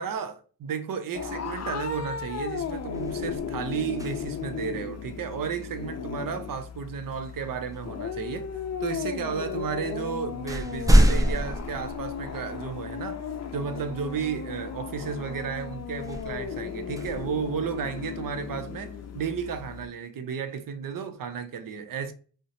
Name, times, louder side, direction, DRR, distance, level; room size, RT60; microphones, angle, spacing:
voice 1, 0.0-8.5 8.8-13.2 13.5-22.1, right 6 dB, 55° right, 0.6 m, -33 dB
sound 1, 1.1-19.9, left 7 dB, 40° left, 0.5 m, -36 dB
sound 2, 2.5-4.6 6.7-6.9 7.7-8.5 9.4-9.5 9.9-12.7 13.3-13.4 16.0-18.1, equal, 10° right, 0.4 m, -26 dB
2.7 x 2.1 x 3.8 m
supercardioid pair, 55°, 41 cm